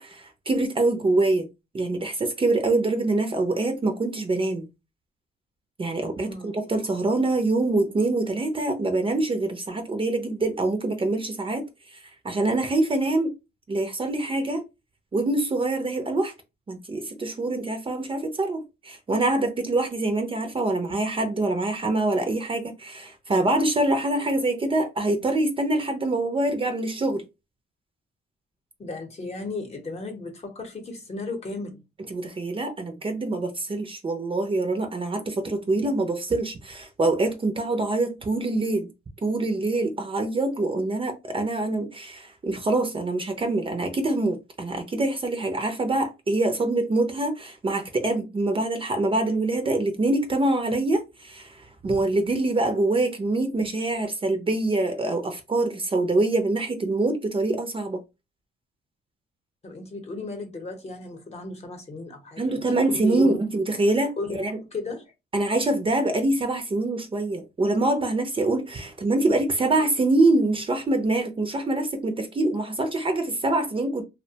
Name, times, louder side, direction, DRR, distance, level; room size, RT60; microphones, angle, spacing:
voice 1, 0.0-1.5 1.7-4.7 5.8-11.7 12.2-13.3 13.7-14.6 15.1-16.3 16.7-27.2 32.1-38.9 39.2-58.0 62.4-64.6 65.3-74.0, right 2 dB, 25° right, 0.5 m, -25 dB
voice 2, 6.3-6.6 28.8-31.8 59.6-62.6 62.9-63.4 64.2-65.1, left 2 dB, 35° left, 0.8 m, -34 dB
2.5 x 2.1 x 2.7 m
cardioid pair, 90°, 20 cm